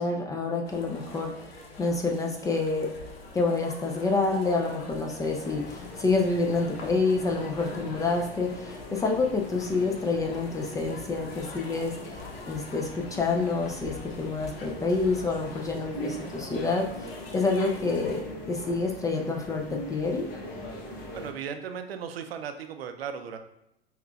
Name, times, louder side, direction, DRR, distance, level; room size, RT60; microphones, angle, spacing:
voice 1, 0.0-1.3 1.8-2.9 3.3-16.9 17.3-18.2 18.5-20.3, left 3 dB, 10° left, 1 dB, 0.3 m, -28 dB
sound 1, 0.6-18.2, left 3 dB, 75° left, 0.8 m, -45 dB
sound 2, 5.2-21.3, equal, 50° left, 1.0 m, -41 dB
voice 2, 21.1-23.4, right 7 dB, 75° right, 7 dB, 0.5 m, -36 dB
5.6 x 2.3 x 2.4 m, 0.82 s
hypercardioid pair, 90°, 30 cm